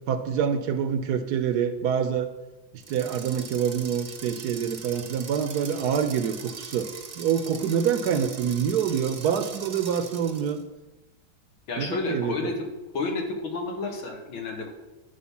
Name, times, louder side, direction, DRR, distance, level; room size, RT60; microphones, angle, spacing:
voice 1, 0.1-2.3 2.7-6.9 7.2-10.6 11.8-12.4, right 8 dB, 65° right, 9 dB, 1.1 m, -26 dB
sound 1, 2.8-10.6, right 5 dB, 40° right, 0.8 m, -41 dB
voice 2, 11.7-12.7 12.9-14.7, left 3 dB, 85° left, 2 dB, 2.5 m, -30 dB
10.0 x 4.8 x 7.1 m, 1.1 s
omnidirectional pair, 2.2 m